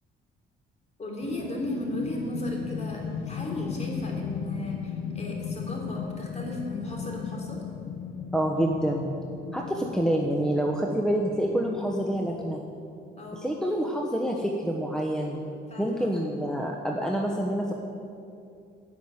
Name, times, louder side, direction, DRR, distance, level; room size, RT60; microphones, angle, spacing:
voice 1, 1.0-7.6 13.2-13.5 15.7-16.2, left 1 dB, 35° left, -1 dB, 3.4 m, -35 dB
sound 1, 1.2-13.4, left 6 dB, 80° left, 0.8 m, -37 dB
voice 2, 8.3-9.1 9.5-12.6 13.3-15.4 15.8-17.7, right 1 dB, 5° left, 0 dB, 1.1 m, -27 dB
13.5 x 6.1 x 9.2 m, 2.6 s
cardioid pair, 90°, 20 cm